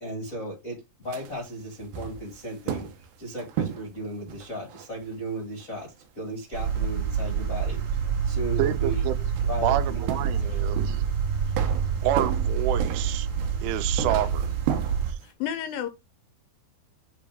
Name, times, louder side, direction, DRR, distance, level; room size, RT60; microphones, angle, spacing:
voice 1, 0.0-10.8, right 1 dB, 55° left, 0.9 m, -36 dB
sound 1, 1.0-6.0 6.8-6.9 7.6-7.7 8.6-8.9 9.2-11.2 11.5-15.1, right 9 dB, 70° right, 2.6 m, -35 dB
sound 2, 6.5-15.1, right 7 dB, 55° right, 2.5 m, -27 dB
voice 2, 8.6-9.1 9.6-11.0 12.0-13.3 13.6-14.5 15.1-15.2, right 12 dB, 85° right, 2.7 m, -28 dB
voice 3, 15.2-15.9, left 10 dB, 80° left, 2.0 m, -31 dB
8.1 x 3.3 x 3.6 m
omnidirectional pair, 4.8 m